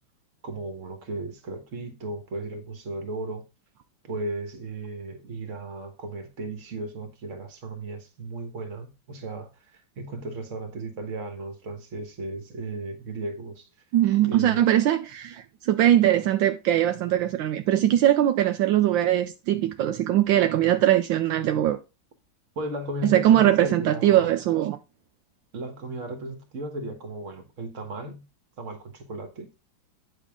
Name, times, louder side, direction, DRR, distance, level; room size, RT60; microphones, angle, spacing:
voice 1, 0.4-3.4 4.0-13.7 14.3-14.6 22.5-24.3 25.5-28.3 28.6-29.5, right 2 dB, 45° right, 1.6 m, -35 dB
voice 2, 13.9-21.8 23.0-24.8, right 12 dB, 80° right, 1.3 m, -21 dB
9.0 x 6.1 x 3.6 m
omnidirectional pair, 2.1 m